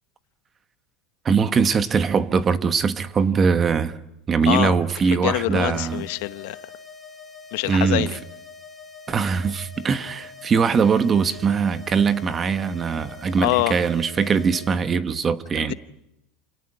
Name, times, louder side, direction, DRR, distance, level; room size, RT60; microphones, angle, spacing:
voice 1, 1.2-3.9 4.3-6.0 7.6-8.1 9.1-15.7, right 5 dB, 25° right, 1.1 m, -21 dB
voice 2, 4.5-4.8 5.1-6.6 7.5-8.2 13.4-13.8 15.6-15.7, left 19 dB, 70° left, 1.0 m, -24 dB
sound 1, 5.7-14.7, left 5 dB, 10° left, 6.1 m, -44 dB
28.5 x 18.0 x 10.0 m
supercardioid pair, 150°, 0 cm